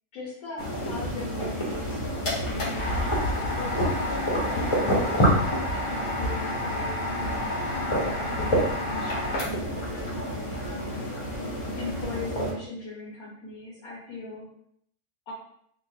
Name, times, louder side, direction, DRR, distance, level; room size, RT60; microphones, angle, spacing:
voice 1, 0.1-2.8 3.6-7.4 7.6-11.1 11.8-14.5 15.3-15.4, left 3 dB, 70° left, -3 dB, 1.2 m, -40 dB
sound 1, 0.6-12.5, equal, 30° left, 0.5 m, -28 dB
sound 2, 2.2-9.8, left 2 dB, 85° left, 1.7 m, -32 dB
4.1 x 2.3 x 2.7 m, 0.68 s
omnidirectional pair, 1.6 m